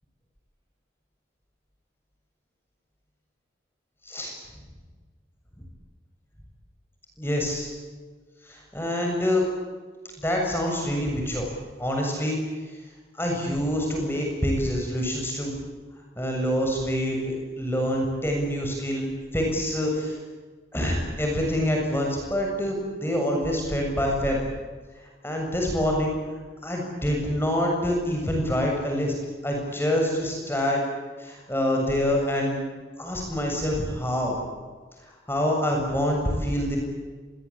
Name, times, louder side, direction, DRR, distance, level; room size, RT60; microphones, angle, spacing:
voice 1, 7.2-7.7 8.4-9.5 10.2-11.5 11.8-12.4 13.2-15.5 16.2-20.2 20.7-24.4 25.2-26.2 26.6-29.1 29.4-30.8 31.2-32.6 33.0-34.4 35.0-36.8, equal, 15° left, 0 dB, 7.3 m, -26 dB
26.5 x 22.5 x 8.8 m, 1.4 s
head